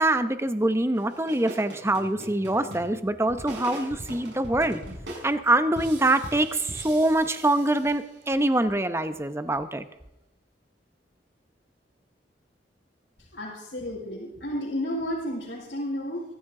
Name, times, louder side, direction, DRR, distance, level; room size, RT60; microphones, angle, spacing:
voice 1, 0.0-4.8 5.2-9.8, right 1 dB, 15° right, 10 dB, 0.9 m, -24 dB
sound 1, 0.9-8.4, right 1 dB, 85° right, 6.0 m, -41 dB
voice 2, 13.3-16.2, equal, 90° left, -5 dB, 4.7 m, -32 dB
23.0 x 14.5 x 3.8 m, 0.92 s
head